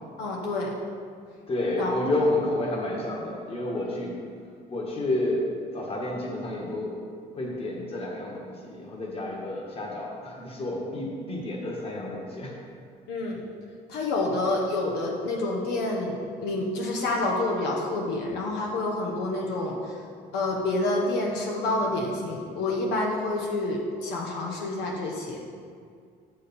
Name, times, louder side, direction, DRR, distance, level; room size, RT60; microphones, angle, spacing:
voice 1, 0.2-0.7 1.8-1.9 13.1-13.4 13.9-20.0 20.3-25.4, left 2 dB, 85° left, -2 dB, 1.1 m, -28 dB
voice 2, 1.5-4.2 4.7-5.5 5.7-6.9 7.3-12.5, left 1 dB, 35° left, -2 dB, 1.5 m, -30 dB
6.7 x 6.4 x 4.2 m, 2.2 s
cardioid pair, 110°, 17 cm